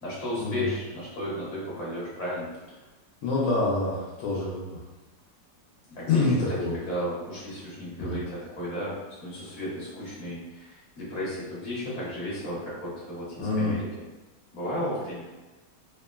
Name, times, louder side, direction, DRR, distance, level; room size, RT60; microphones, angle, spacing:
voice 1, 0.0-2.5 5.9-6.3 6.7-13.9 14.5-15.4, equal, 50° left, -8 dB, 1.3 m, -34 dB
voice 2, 3.2-4.8 6.1-6.8 8.0-8.2 13.4-13.8, left 3 dB, 80° left, -7 dB, 1.3 m, -26 dB
3.7 x 2.1 x 2.2 m, 1.1 s
omnidirectional pair, 1.9 m